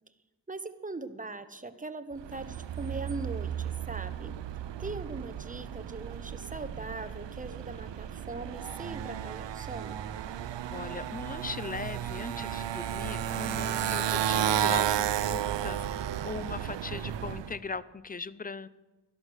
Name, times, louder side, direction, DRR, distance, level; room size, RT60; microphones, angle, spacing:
voice 1, 0.5-4.4 4.8-10.0, right 3 dB, 20° right, 10 dB, 1.0 m, -40 dB
Motorcycle, 2.2-17.6, right 10 dB, 90° right, 0.6 m, -33 dB
voice 2, 10.7-18.7, left 4 dB, 20° left, 17 dB, 0.5 m, -39 dB
12.5 x 11.5 x 6.5 m, 1.1 s
wide cardioid pair, 75°, 42 cm